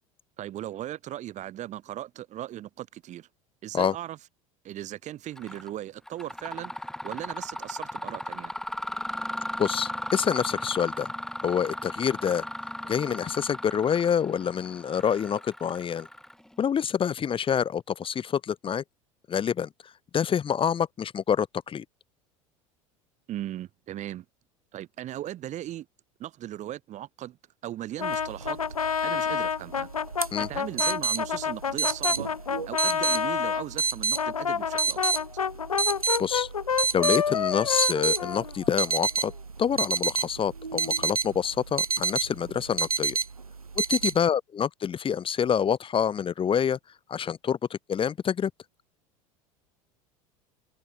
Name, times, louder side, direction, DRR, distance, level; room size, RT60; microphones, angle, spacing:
voice 1, 0.4-3.3 3.6-4.2 4.6-8.5 23.3-24.2 24.7-25.9 26.2-27.4 27.6-28.6 29.0-29.9 30.4-32.3 32.7-35.2, right 13 dB, 40° right, 2.2 m, -38 dB
Mechanisms, 5.4-5.7 6.1-16.6, left 1 dB, 5° left, 1.1 m, -36 dB
voice 2, 9.6-11.1 11.4-12.4 12.9-16.1 16.6-18.8 19.3-19.7 20.1-21.8 30.3-30.5 36.2-36.5 36.8-39.3 39.6-43.2 43.8-46.8 47.1-48.5, left 8 dB, 30° left, 1.9 m, -27 dB
Brass instrument, 28.0-33.6 34.2-38.9, left 7 dB, 80° left, 2.3 m, -29 dB
sound 1, 28.0-44.2, right 4 dB, 90° right, 1.3 m, -30 dB
figure-of-eight pair, 75°, 18 cm